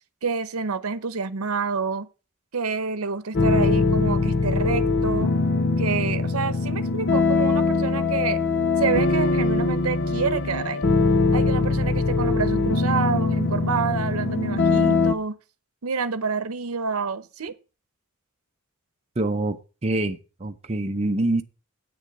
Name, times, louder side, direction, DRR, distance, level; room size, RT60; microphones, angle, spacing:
voice 1, 0.2-2.1 2.5-5.3 5.8-8.4 8.8-10.8 11.3-15.4 15.8-17.5, right 5 dB, 85° right, 0.8 m, -28 dB
sound 1, 3.3-15.1, left 3 dB, 55° left, 0.7 m, -22 dB
voice 2, 19.2-21.4, right 2 dB, 30° right, 0.6 m, -26 dB
8.6 x 6.8 x 6.4 m
head